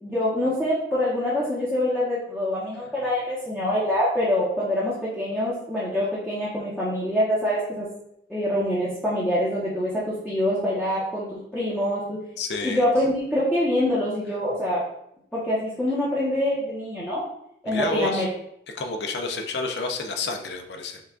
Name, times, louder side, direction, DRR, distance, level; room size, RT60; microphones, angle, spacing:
voice 1, 0.0-7.9 8.3-12.2 12.6-14.8 15.3-17.3 17.6-18.3, left 1 dB, 5° left, -9 dB, 0.9 m, -25 dB
voice 2, 12.4-12.8 17.6-18.3 18.7-21.0, left 3 dB, 65° left, 4 dB, 0.6 m, -29 dB
5.6 x 2.4 x 3.7 m, 0.76 s
head